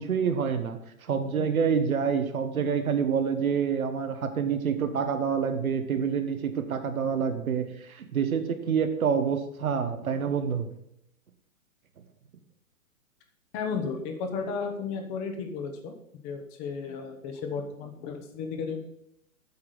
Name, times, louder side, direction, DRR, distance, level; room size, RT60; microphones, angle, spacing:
voice 1, 0.0-10.7, right 6 dB, 80° right, 7 dB, 1.3 m, -27 dB
voice 2, 13.5-15.9 16.2-18.8, left 5 dB, 30° left, 5 dB, 1.2 m, -34 dB
8.5 x 6.1 x 4.9 m, 0.75 s
hypercardioid pair, 135°, 42 cm